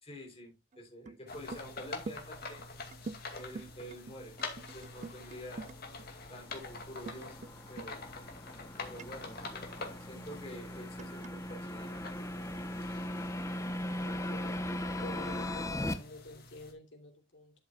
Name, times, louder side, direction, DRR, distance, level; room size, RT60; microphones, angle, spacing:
voice 1, 0.0-2.6 3.4-5.7 6.3-7.3 7.7-8.0 8.8-9.7 10.1-11.9, equal, 30° left, -1 dB, 3.2 m, -48 dB
sound 1, 0.7-0.8 1.1-1.7 2.0-6.1 7.1-7.5 7.8-7.9 8.5-8.6 9.0-10.1 11.0-11.8, right 3 dB, 40° right, 0.4 m, -45 dB
sound 2, 1.3-16.7, left 3 dB, 55° left, 2.3 m, -46 dB
sound 3, 4.9-15.9, left 1 dB, 15° left, 0.9 m, -39 dB
voice 2, 14.0-17.5, left 1 dB, 75° left, 3 dB, 3.0 m, -49 dB
11.5 x 7.4 x 2.3 m, 0.24 s
head